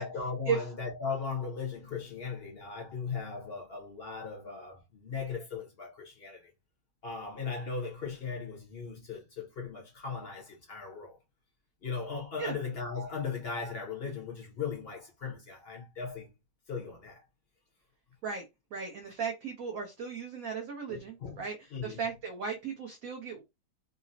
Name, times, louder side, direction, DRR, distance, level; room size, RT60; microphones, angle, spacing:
voice 1, 0.0-6.5 7.0-11.2 11.8-16.3 16.7-17.2 20.9-21.4 21.7-22.0, left 5 dB, 50° left, 0.8 m, -38 dB
voice 2, 18.7-23.4, right 6 dB, 65° right, 0.9 m, -36 dB
3.8 x 2.0 x 2.6 m
omnidirectional pair, 1.9 m